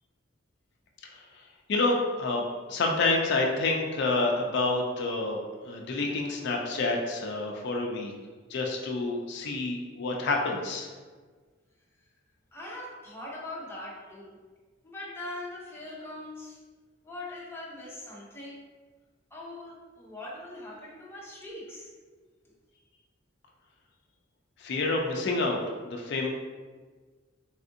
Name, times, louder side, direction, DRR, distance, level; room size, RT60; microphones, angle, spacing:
voice 1, 1.7-8.1 8.5-10.9 24.6-26.3, left 3 dB, 60° left, 1 dB, 0.4 m, -28 dB
voice 2, 12.5-14.4 14.8-16.6 17.0-18.7 19.3-21.9, left 1 dB, 10° left, -6 dB, 0.7 m, -41 dB
3.4 x 2.5 x 2.6 m, 1.4 s
head